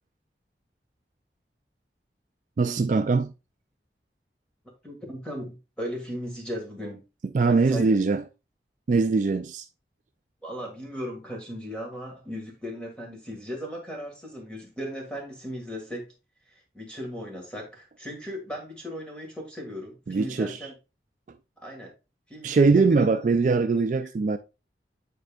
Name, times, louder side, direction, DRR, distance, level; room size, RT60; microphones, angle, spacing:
voice 1, 2.6-3.3 7.3-8.2 8.9-9.7 20.1-20.6 22.4-24.4, right 4 dB, 45° right, 0.3 m, -22 dB
voice 2, 4.8-7.0 7.5-8.0 10.4-16.0 16.7-20.7 21.6-21.9 22.3-23.1, equal, 5° left, 1.8 m, -37 dB
9.3 x 4.3 x 2.4 m
head